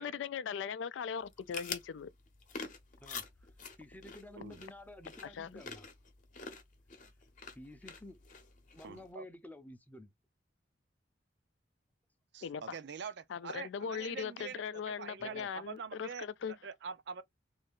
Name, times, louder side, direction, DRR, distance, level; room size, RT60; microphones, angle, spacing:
voice 1, 0.0-2.1 5.2-5.6 12.4-12.6 13.3-16.5, left 7 dB, 75° left, 0.3 m, -39 dB
sound 1, 1.2-9.1, left 5 dB, 45° left, 0.8 m, -47 dB
voice 2, 3.0-3.5 3.8-5.9 7.5-8.2 8.7-10.1 15.2-15.5, left 1 dB, 10° left, 0.5 m, -51 dB
voice 3, 8.8-9.3 12.3-17.2, right 6 dB, 65° right, 0.5 m, -45 dB
3.2 x 2.6 x 3.5 m
head